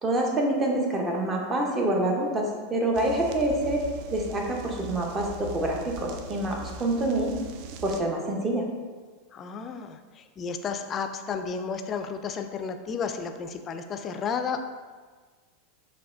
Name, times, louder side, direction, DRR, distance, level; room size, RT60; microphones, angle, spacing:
voice 1, 0.0-3.8 4.1-7.3 7.8-8.6, right 1 dB, 25° right, 0 dB, 0.8 m, -26 dB
voice 2, 1.5-1.8 9.3-14.6, left 5 dB, 30° left, 7 dB, 0.3 m, -33 dB
sound 1, 2.9-8.0, right 4 dB, 55° right, 0.3 m, -40 dB
5.8 x 2.2 x 2.6 m, 1.5 s
hypercardioid pair, 90°, 0 cm